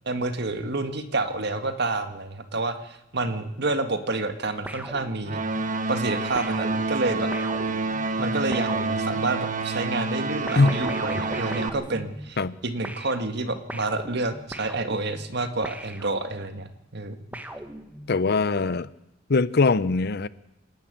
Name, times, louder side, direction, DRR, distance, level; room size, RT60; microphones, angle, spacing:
voice 1, 0.1-5.4 5.9-7.3 8.2-17.4, right 2 dB, 60° right, 1.8 m, -29 dB
sound 1, 4.7-5.7 6.4-9.5 10.5-12.6 12.8-16.6 17.3-18.3, right 1 dB, 10° right, 1.3 m, -39 dB
sound 2, 5.3-11.7, right 3 dB, 40° right, 1.2 m, -28 dB
voice 2, 18.1-18.9 19.3-20.3, left 3 dB, 55° left, 0.7 m, -21 dB
26.5 x 11.0 x 9.0 m
head